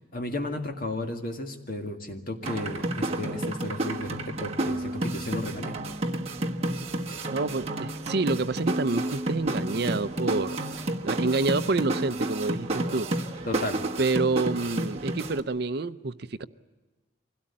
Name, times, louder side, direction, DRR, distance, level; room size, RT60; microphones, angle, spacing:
voice 1, 0.1-5.8 13.4-13.8, left 1 dB, 45° left, 4 dB, 2.1 m, -34 dB
sound 1, 2.4-15.4, right 1 dB, 30° right, 1.4 m, -31 dB
voice 2, 7.3-10.6 11.0-13.1 14.0-16.5, right 3 dB, 55° right, 12 dB, 0.6 m, -28 dB
24.5 x 17.0 x 8.6 m, 1.3 s
head